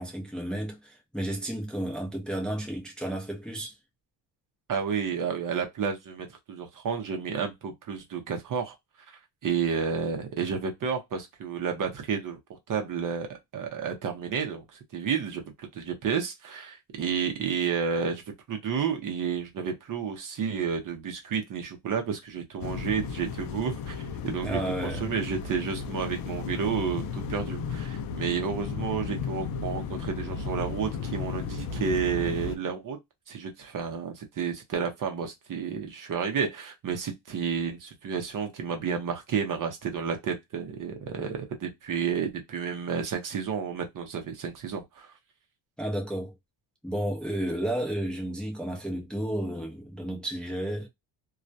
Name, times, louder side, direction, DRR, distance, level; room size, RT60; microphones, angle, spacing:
voice 1, 0.0-3.7 24.4-25.1 45.8-46.3 46.8-50.9, right 1 dB, ahead, 0.6 m, -32 dB
voice 2, 4.7-8.8 9.1-12.4 12.7-13.3 13.5-14.6 14.9-33.0 33.3-45.1, right 6 dB, 45° right, 0.7 m, -31 dB
sound 1, 22.6-32.6, left 6 dB, 50° left, 0.5 m, -34 dB
2.3 x 2.0 x 2.5 m
cardioid pair, 110°, 47 cm